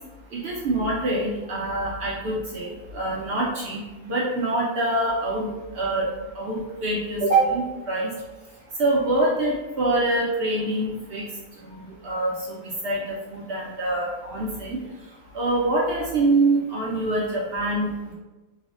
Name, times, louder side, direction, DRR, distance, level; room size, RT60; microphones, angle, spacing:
voice 1, 0.3-5.5 5.8-6.1 6.4-8.1 8.8-11.3 11.7-12.6 12.8-13.1 13.3-14.8 15.3-18.1, right 2 dB, 65° right, -4 dB, 0.6 m, -25 dB
3.3 x 2.1 x 2.4 m, 1.2 s
omnidirectional pair, 1.5 m